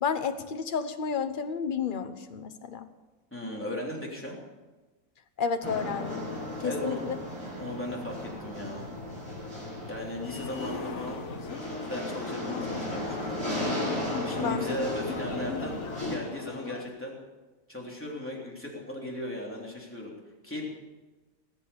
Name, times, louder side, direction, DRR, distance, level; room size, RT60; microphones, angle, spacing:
voice 1, 0.0-2.9 5.4-6.3 6.6-7.1 14.4-14.7, left 6 dB, 40° left, 8 dB, 1.1 m, -31 dB
voice 2, 3.3-4.4 6.6-7.2 7.6-8.8 9.9-11.2 11.9-13.4 14.2-15.8 16.1-17.2 17.7-20.1 20.4-20.7, left 1 dB, 10° left, -3 dB, 3.5 m, -36 dB
sound 1, 5.6-16.2, left 1 dB, 20° right, 5.6 m, -35 dB
sound 2, 10.2-16.9, left 6 dB, 60° left, 1.3 m, -40 dB
19.5 x 8.5 x 7.0 m, 1.2 s
omnidirectional pair, 1.5 m